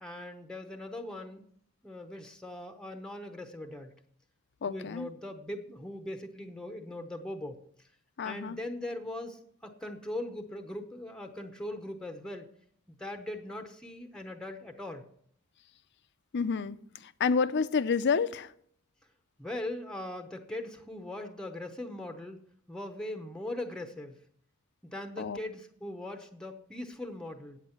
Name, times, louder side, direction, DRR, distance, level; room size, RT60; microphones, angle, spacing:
voice 1, 0.0-1.4 1.8-3.9 4.7-7.9 8.2-12.5 12.9-15.0 19.4-22.4 22.7-24.2 24.8-27.6, left 1 dB, 5° left, 0.8 m, -40 dB
voice 2, 4.6-5.1 8.2-8.6 16.3-16.8 17.0-18.5 25.2-25.4, left 5 dB, 55° left, 0.5 m, -29 dB
8.6 x 8.1 x 5.7 m
head